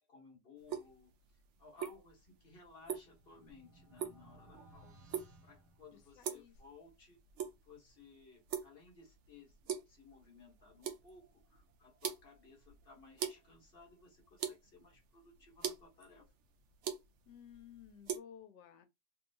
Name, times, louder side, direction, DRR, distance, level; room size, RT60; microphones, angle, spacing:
voice 1, 0.1-1.1 1.6-5.0 5.4-7.2 7.6-16.3, left 4 dB, 35° left, 1.2 m, -59 dB
sound 1, 0.6-18.2, right 8 dB, 85° right, 0.6 m, -44 dB
sound 2, 2.7-6.5, right 1 dB, 60° right, 1.0 m, -61 dB
voice 2, 5.9-6.6 17.3-18.9, left 9 dB, 75° left, 1.3 m, -55 dB
3.0 x 2.8 x 2.7 m
omnidirectional pair, 1.9 m